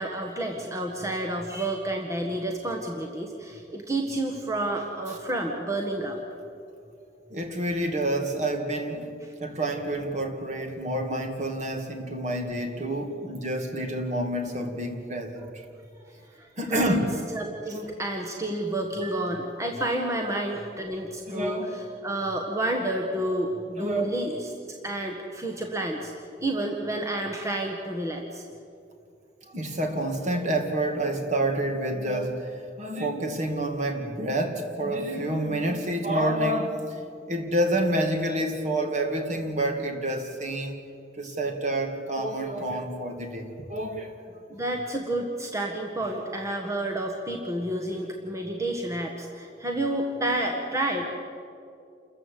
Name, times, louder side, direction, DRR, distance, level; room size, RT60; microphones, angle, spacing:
voice 1, 0.0-6.2 16.4-17.0 17.3-26.1 26.4-28.4 44.5-51.1, right 1 dB, 15° right, 1 dB, 1.6 m, -30 dB
voice 2, 7.3-9.1 9.4-15.5 16.6-17.1 19.0-19.2 20.2-20.3 21.3-21.7 23.8-24.1 29.5-37.0 37.3-40.8 41.2-44.4, right 1 dB, 40° right, 4 dB, 2.3 m, -28 dB
28.5 x 14.5 x 8.4 m, 2.5 s
head